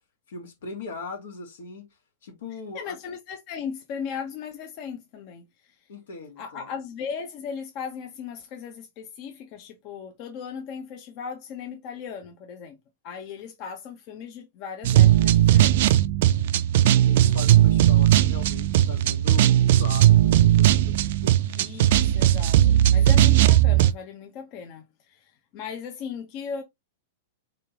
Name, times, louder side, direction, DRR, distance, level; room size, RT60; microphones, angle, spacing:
voice 1, 0.3-1.9 2.2-3.0 5.9-6.7 17.1-19.5 19.8-20.9 21.2-21.4, left 4 dB, 80° left, 1.8 m, -39 dB
voice 2, 2.7-5.4 6.4-12.8 13.0-16.0 21.4-26.6, left 6 dB, 45° left, 0.8 m, -37 dB
sound 1, 14.8-23.9, right 12 dB, 65° right, 0.3 m, -18 dB
3.7 x 3.3 x 2.9 m
hypercardioid pair, 135°, 0 cm